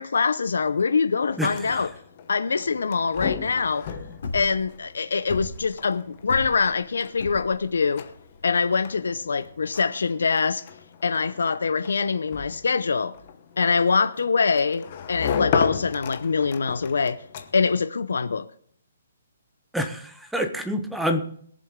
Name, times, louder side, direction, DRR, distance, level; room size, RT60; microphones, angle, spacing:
voice 1, 0.0-1.9 2.3-3.9 4.3-8.0 8.4-10.6 11.0-13.1 13.6-17.2 17.5-18.5, left 5 dB, 90° left, 0.7 m, -24 dB
sound 1, 1.3-17.8, left 7 dB, 30° left, 1.0 m, -35 dB
voice 2, 1.4-1.8 19.7-21.2, equal, ahead, 0.7 m, -27 dB
sound 2, 4.2-9.9, left 3 dB, 50° left, 3.0 m, -36 dB
21.5 x 7.6 x 3.7 m
hypercardioid pair, 175°, 0 cm